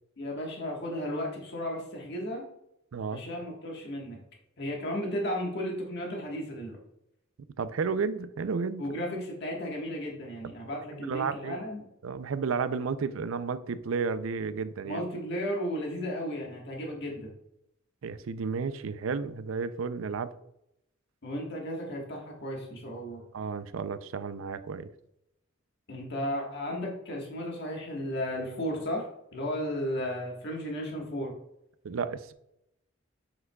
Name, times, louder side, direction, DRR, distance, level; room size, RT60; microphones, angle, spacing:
voice 1, 0.2-2.5 3.1-4.2 4.6-6.8 8.8-11.8 14.8-17.3 21.2-23.2 25.9-31.3, equal, 60° left, -1 dB, 1.4 m, -34 dB
voice 2, 2.9-3.2 7.6-8.8 10.9-11.6 12.0-15.0 18.0-20.3 23.3-24.9 31.8-32.3, right 5 dB, 85° right, 13 dB, 0.5 m, -32 dB
7.7 x 5.9 x 2.3 m, 0.80 s
head